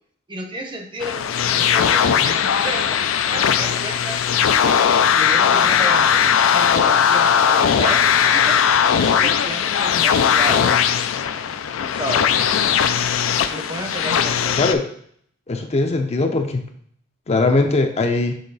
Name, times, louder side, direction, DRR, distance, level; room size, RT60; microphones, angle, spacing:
voice 1, 0.3-4.2 5.1-6.2 6.5-8.6 9.0-10.7 11.9-12.3 13.5-14.5, right 1 dB, 25° right, 4 dB, 0.7 m, -31 dB
sound 1, 1.0-14.7, left 8 dB, 90° left, 0.4 m, -18 dB
voice 2, 15.5-16.7 17.3-18.3, left 3 dB, 35° left, 5 dB, 0.5 m, -20 dB
6.5 x 3.6 x 4.0 m, 0.63 s
head